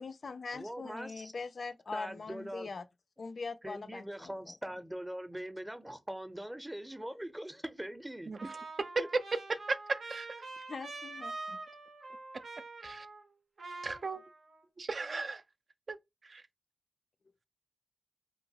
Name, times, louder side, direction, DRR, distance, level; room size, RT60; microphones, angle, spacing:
voice 1, 0.0-2.8 3.2-4.5 10.6-11.6, left 4 dB, 70° left, 0.3 m, -42 dB
voice 2, 0.5-1.3 1.9-2.7 3.6-8.3 9.0-9.1, right 1 dB, 15° right, 0.5 m, -42 dB
Trumpet, 8.4-13.3 13.6-14.6, right 3 dB, 90° right, 0.7 m, -45 dB
voice 3, 9.7-10.3 12.8-13.1 13.8-14.2 14.8-15.4 15.9-16.0 16.3-16.4, right 3 dB, 60° right, 0.3 m, -37 dB
2.8 x 2.2 x 2.7 m
cardioid pair, 50°, 0 cm